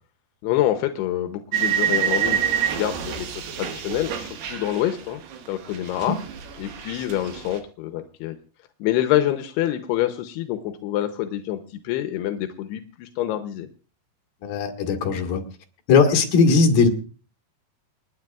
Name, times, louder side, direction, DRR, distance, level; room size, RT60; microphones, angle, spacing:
voice 1, 0.4-5.2 5.5-6.2 6.6-8.4 8.8-13.7, left 13 dB, 85° left, 8 dB, 2.8 m, -26 dB
sound 1, 1.5-5.5 5.7-7.6, right 9 dB, 90° right, 3.6 m, -27 dB
voice 2, 14.4-15.4 15.9-16.9, left 4 dB, 65° left, 2 dB, 3.3 m, -18 dB
28.5 x 9.8 x 2.4 m, 0.36 s
omnidirectional pair, 4.6 m